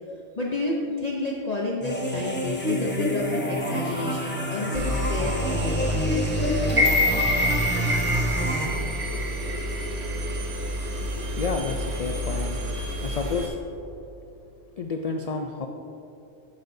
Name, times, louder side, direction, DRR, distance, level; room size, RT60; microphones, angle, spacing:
voice 1, 0.4-6.9, left 2 dB, 40° left, -2 dB, 0.8 m, -30 dB
sound 1, 1.8-8.6, equal, 10° left, 0.8 m, -27 dB
Engine, 4.7-13.5, equal, 65° right, 1.2 m, -30 dB
sound 2, 6.7-10.8 11.2-11.3, left 2 dB, 30° right, 0.9 m, -26 dB
voice 2, 11.4-12.6 13.0-13.6 14.8-15.7, left 4 dB, 60° left, 3 dB, 0.4 m, -30 dB
11.5 x 8.4 x 2.7 m, 2.8 s
omnidirectional pair, 1.2 m